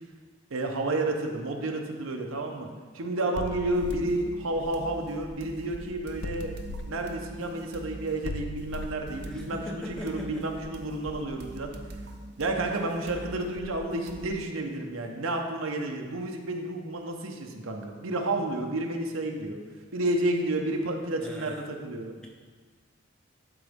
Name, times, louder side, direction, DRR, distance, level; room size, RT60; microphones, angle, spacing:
voice 1, 0.5-2.7 2.9-6.5 6.9-11.7 12.4-19.6 19.9-22.1, right 2 dB, 90° right, 3 dB, 0.8 m, -31 dB
sound 1, 3.3-5.7 6.2-10.9, left 1 dB, 60° left, 0.4 m, -40 dB
sound 2, 3.7-14.4, right 1 dB, 50° right, 0.6 m, -43 dB
voice 2, 9.2-10.5 21.2-21.6 22.2-22.3, left 1 dB, 5° left, -1 dB, 0.7 m, -40 dB
12.0 x 3.9 x 3.6 m, 1.5 s
head